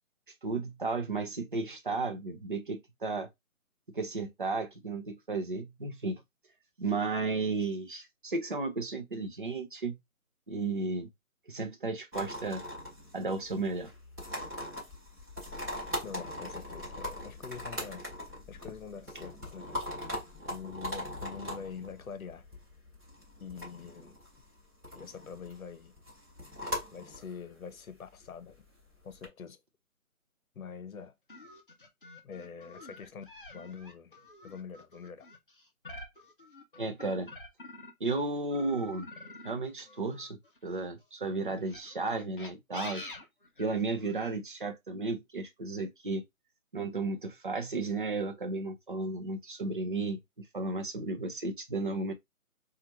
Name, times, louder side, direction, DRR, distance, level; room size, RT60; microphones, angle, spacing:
voice 1, 0.4-3.3 3.9-6.2 6.8-10.0 10.5-11.1 11.5-12.6 13.1-13.9 36.8-37.3 38.0-39.1 39.4-43.1 43.6-46.2 46.7-52.1, right 3 dB, 35° right, 0.5 m, -34 dB
sound 1, 12.1-29.3, left 1 dB, 10° right, 1.1 m, -41 dB
voice 2, 16.0-18.1 18.5-19.7 20.5-22.5 23.4-24.2 24.9-25.9 26.9-28.6 29.0-29.6 30.5-31.1 32.2-33.3 33.5-34.2 34.4-35.3, left 6 dB, 70° left, 0.8 m, -44 dB
sound 2, 31.3-38.1 38.5-40.9 41.6-44.2, left 2 dB, 40° left, 0.6 m, -47 dB
2.9 x 2.4 x 4.2 m
hypercardioid pair, 170°, 43 cm